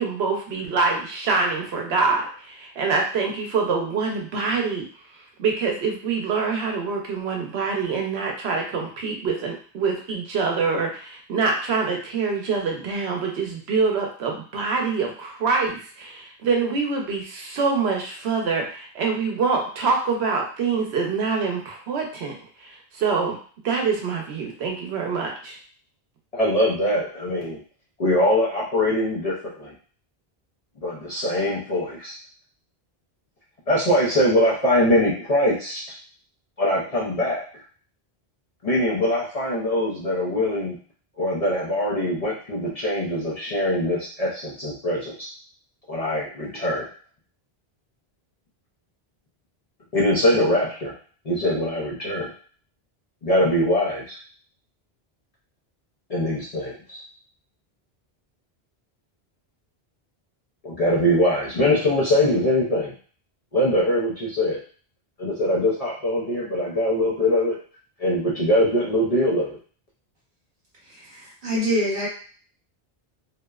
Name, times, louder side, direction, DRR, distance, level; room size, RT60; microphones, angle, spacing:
voice 1, 0.0-4.9 5.4-23.4 23.6-25.6, right 4 dB, 85° right, 1 dB, 0.9 m, -25 dB
voice 2, 26.3-27.6 28.0-29.7 30.8-32.1 33.7-35.8 36.6-37.4 38.6-40.8 41.2-45.3 45.9-46.9 49.9-50.9 51.3-52.3 53.2-54.2 56.1-57.0 60.6-62.9 63.5-64.6 65.2-67.6 68.0-69.6, left 1 dB, 45° left, -6 dB, 0.5 m, -22 dB
voice 3, 71.1-72.1, equal, 55° right, -5 dB, 1.2 m, -25 dB
2.7 x 2.0 x 2.3 m, 0.43 s
omnidirectional pair, 1.0 m